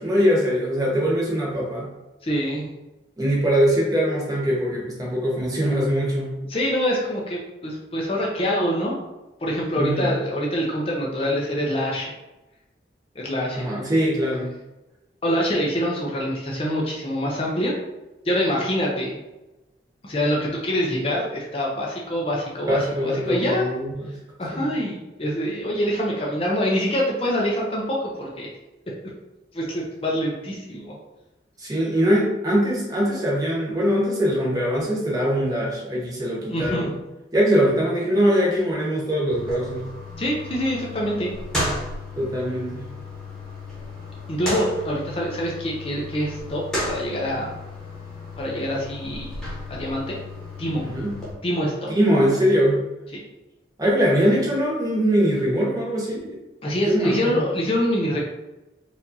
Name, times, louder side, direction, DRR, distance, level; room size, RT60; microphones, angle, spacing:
voice 1, 0.0-1.9 3.2-6.4 9.8-10.2 13.5-14.5 22.6-24.2 24.5-24.7 31.6-36.9 37.3-39.8 42.2-42.8 50.8-51.1 52.0-52.8 53.8-56.4 56.9-57.4, equal, 20° right, -4 dB, 0.9 m, -22 dB
voice 2, 2.2-2.7 6.5-9.0 9.4-12.1 13.2-13.7 15.2-17.7 18.2-19.2 20.0-23.7 24.4-28.5 29.5-30.9 36.5-36.9 40.2-41.3 44.3-47.5 48.4-49.3 49.7-50.2 50.6-50.8 51.4-51.9 53.1-53.2 56.6-58.2, equal, 30° left, -3 dB, 0.6 m, -25 dB
sound 1, 39.3-51.3, left 1 dB, 5° left, 1.2 m, -34 dB
4.4 x 2.6 x 2.7 m, 1.0 s
head